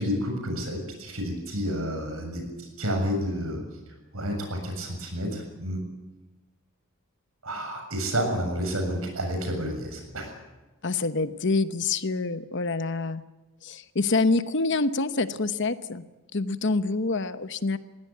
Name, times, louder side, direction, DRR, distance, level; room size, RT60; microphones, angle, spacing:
voice 1, 0.0-2.4 2.8-3.6 4.1-5.8 7.4-10.4, equal, 70° right, 4 dB, 7.2 m, -30 dB
voice 2, 10.8-13.2 13.6-17.8, left 3 dB, 55° left, 12 dB, 1.0 m, -26 dB
21.5 x 16.5 x 9.4 m, 1.1 s
head